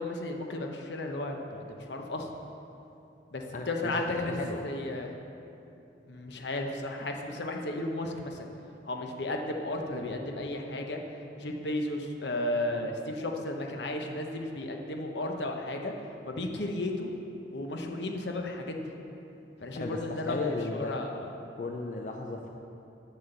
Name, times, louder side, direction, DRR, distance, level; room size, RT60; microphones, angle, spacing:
voice 1, 0.0-2.3 3.3-4.3 4.6-5.1 6.1-8.5 8.8-11.0 11.4-15.9 16.2-17.1 17.5-18.9 19.6-21.2, left 1 dB, 75° left, 2 dB, 1.0 m, -34 dB
voice 2, 3.5-4.6 19.8-21.0 21.6-22.5, left 3 dB, 45° left, 2 dB, 0.5 m, -35 dB
7.8 x 7.6 x 6.7 m, 2.8 s
head